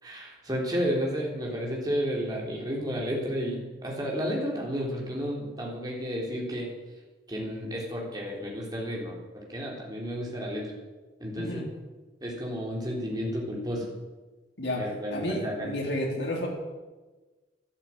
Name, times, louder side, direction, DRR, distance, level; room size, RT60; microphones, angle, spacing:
voice 1, 0.0-6.7 7.3-10.7 11.2-11.6 12.2-13.9 14.8-15.7, equal, 20° right, -2 dB, 3.6 m, -32 dB
voice 2, 11.4-11.7 14.6-14.9 15.1-16.5, left 1 dB, 70° left, -1 dB, 3.6 m, -31 dB
12.5 x 11.5 x 8.9 m, 1.2 s
head